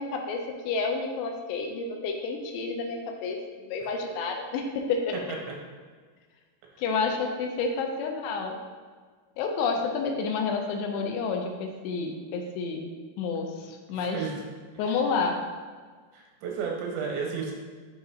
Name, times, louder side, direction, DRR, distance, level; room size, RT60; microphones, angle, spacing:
voice 1, 0.0-5.1 6.8-8.6 9.4-12.9 13.2-14.2 14.8-15.4, left 4 dB, 80° left, 3 dB, 2.6 m, -30 dB
voice 2, 13.6-14.4 14.8-15.0 16.1-17.5, right 5 dB, 90° right, 0 dB, 3.2 m, -34 dB
6.9 x 2.8 x 4.9 m, 1.5 s
omnidirectional pair, 5.1 m